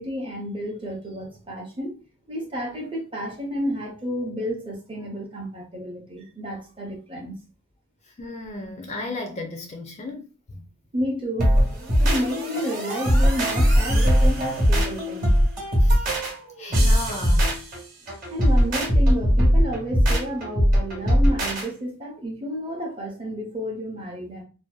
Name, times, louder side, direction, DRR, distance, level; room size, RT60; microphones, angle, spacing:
voice 1, 0.0-1.9 2.3-7.4 10.9-11.7 12.0-15.3 18.3-24.4, equal, 25° right, 0.6 m, -31 dB
voice 2, 8.1-10.7 15.8-16.1 16.6-17.6, left 2 dB, 30° left, 0.4 m, -35 dB
sound 1, 11.4-21.7, equal, 40° right, 0.9 m, -20 dB
2.6 x 2.1 x 2.3 m
head